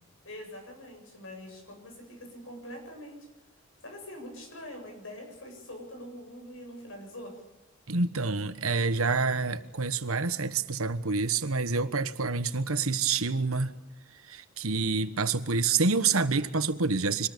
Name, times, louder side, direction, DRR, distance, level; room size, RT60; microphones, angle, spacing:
voice 1, 0.2-3.3 3.8-7.4, left 1 dB, 65° left, 7.8 m, -44 dB
voice 2, 7.9-13.7 14.3-17.3, right 4 dB, 75° right, 1.3 m, -27 dB
25.5 x 20.0 x 6.9 m
head